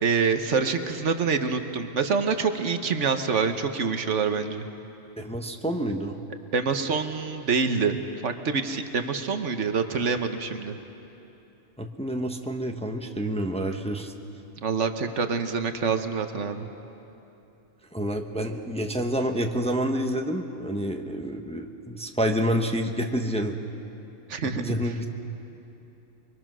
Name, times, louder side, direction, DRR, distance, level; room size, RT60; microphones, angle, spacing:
voice 1, 0.0-4.6 6.5-10.8 14.6-16.7 24.3-24.9, right 5 dB, 70° right, 7 dB, 1.4 m, -26 dB
voice 2, 5.2-6.2 11.8-14.1 17.9-23.6 24.4-25.1, equal, 5° left, 4 dB, 1.0 m, -28 dB
28.5 x 22.5 x 6.3 m, 2.9 s
omnidirectional pair, 1.3 m